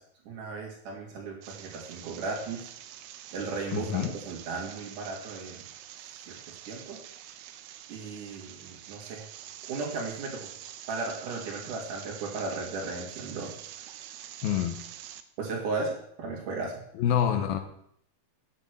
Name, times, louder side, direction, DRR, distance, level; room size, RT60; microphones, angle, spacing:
voice 1, 0.2-2.7 3.3-5.6 6.1-7.0 7.9-9.3 9.6-10.5 10.9-13.6 15.4-17.1, right 3 dB, 55° right, -1 dB, 3.4 m, -36 dB
sound 1, 1.4-15.2, right 11 dB, 85° right, 2.6 m, -46 dB
voice 2, 3.7-4.1 14.4-14.8 17.0-17.6, left 9 dB, 75° left, 7 dB, 2.7 m, -26 dB
9.8 x 8.2 x 6.2 m, 0.68 s
omnidirectional pair, 4.5 m